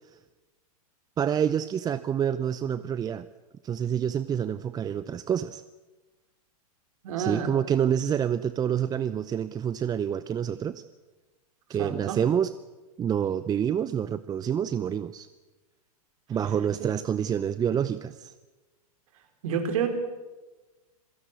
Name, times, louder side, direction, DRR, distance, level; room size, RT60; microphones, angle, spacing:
voice 1, 1.2-3.3 3.6-5.6 7.2-10.8 11.7-12.5 13.0-15.3 16.3-18.3, right 9 dB, 20° right, 14 dB, 0.7 m, -27 dB
voice 2, 7.0-7.5 11.8-12.2 16.8-16.9 19.4-19.9, right 7 dB, 60° right, 6 dB, 4.2 m, -29 dB
26.5 x 17.0 x 8.3 m, 1.2 s
hypercardioid pair, 105°, 19 cm